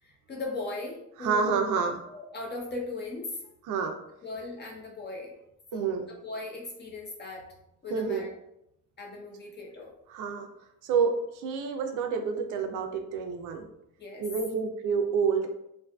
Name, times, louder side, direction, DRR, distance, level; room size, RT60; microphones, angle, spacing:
voice 1, 0.0-1.7 2.1-3.5 4.2-5.3 5.7-5.9 6.2-7.5 7.8-8.3 9.0-9.9 14.0-14.2, left 3 dB, 35° left, -1 dB, 0.7 m, -38 dB
voice 2, 1.2-2.0 3.7-4.0 5.7-6.1 7.9-8.3 10.1-10.5 10.8-13.7 14.2-15.5, right 5 dB, 85° right, 5 dB, 0.5 m, -28 dB
2.6 x 2.4 x 2.2 m, 0.81 s
cardioid pair, 90°, 30 cm